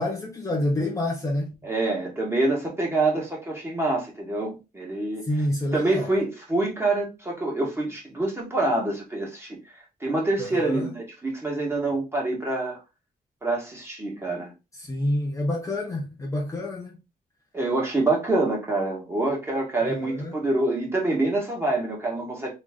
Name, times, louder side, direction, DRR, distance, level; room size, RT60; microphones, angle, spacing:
voice 1, 0.0-1.5 5.3-6.1 10.4-10.9 14.7-17.0 19.8-20.4, left 1 dB, 20° left, 0.9 m, -28 dB
voice 2, 1.6-5.2 5.7-12.8 13.4-14.5 17.5-22.5, right 2 dB, 15° right, 1.8 m, -26 dB
3.8 x 3.2 x 3.7 m
wide cardioid pair, 140°, 17 cm